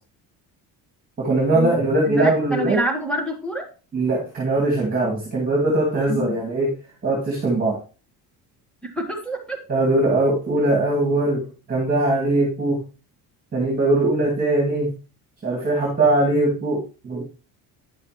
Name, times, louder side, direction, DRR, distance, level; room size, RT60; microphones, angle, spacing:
voice 1, 1.2-2.8 3.9-6.7 7.0-7.8 9.7-12.8 13.5-14.9 15.4-17.2, right 2 dB, 20° right, -2 dB, 2.4 m, -21 dB
voice 2, 2.1-3.6 6.1-6.4 8.8-9.6, right 1 dB, 5° left, 1 dB, 1.7 m, -27 dB
10.0 x 6.4 x 3.1 m, 0.35 s
cardioid pair, 165°, 38 cm